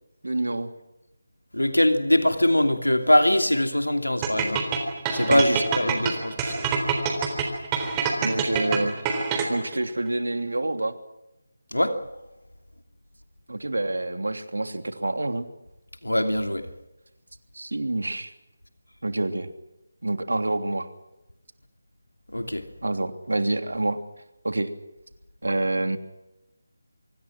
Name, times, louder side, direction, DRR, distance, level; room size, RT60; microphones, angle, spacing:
voice 1, 0.2-0.7 5.3-5.6 8.2-9.0 9.5-10.9 13.5-15.5 17.5-18.3 19.0-19.5 20.0-20.9 22.8-24.0 24.4-24.7 25.4-26.0, right 2 dB, 70° right, 3.1 m, -27 dB
voice 2, 1.5-4.7 5.1-6.6 11.7-12.0 16.0-16.7 22.3-22.7, left 1 dB, 90° left, 2.8 m, -22 dB
sound 1, 4.2-9.8, right 6 dB, 15° right, 3.7 m, -26 dB
25.0 x 24.5 x 6.1 m
figure-of-eight pair, 160°, 0 cm